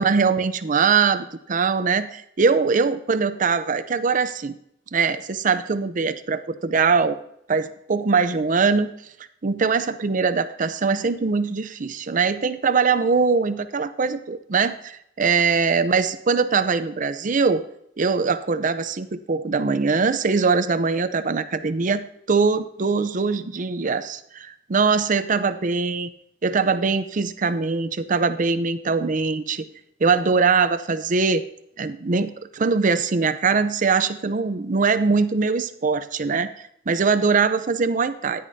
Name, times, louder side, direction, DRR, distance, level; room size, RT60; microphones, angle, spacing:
voice 1, 0.0-4.6 4.9-7.2 7.5-8.9 9.4-17.6 18.0-22.0 22.3-26.1 26.4-29.7 30.0-31.4 31.8-36.5 36.9-38.5, right 4 dB, 45° right, 12 dB, 0.6 m, -22 dB
13.5 x 10.0 x 2.7 m, 0.76 s
head